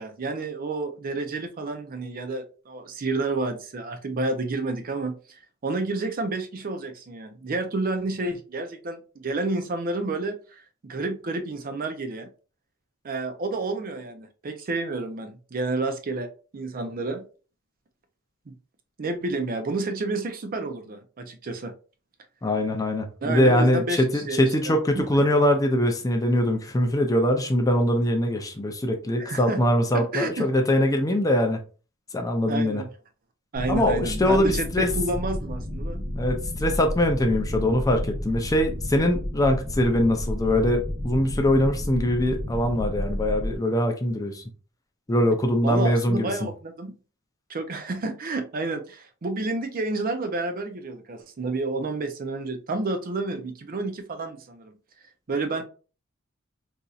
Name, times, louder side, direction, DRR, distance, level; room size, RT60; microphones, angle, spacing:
voice 1, 0.0-12.3 13.0-16.3 16.5-17.2 18.5-18.6 19.0-21.7 23.2-25.1 29.2-29.6 29.9-30.5 32.5-32.9 33.5-36.1 45.6-46.9 47.5-54.7 55.3-55.6, right 3 dB, 45° right, 7 dB, 0.5 m, -30 dB
voice 2, 22.4-31.6 32.1-32.8 33.7-34.9 36.1-44.4 45.1-46.3, left 1 dB, 15° left, 5 dB, 0.4 m, -22 dB
sound 1, 33.5-43.6, left 1 dB, 10° right, 1.2 m, -31 dB
4.0 x 2.6 x 2.3 m, 0.36 s
head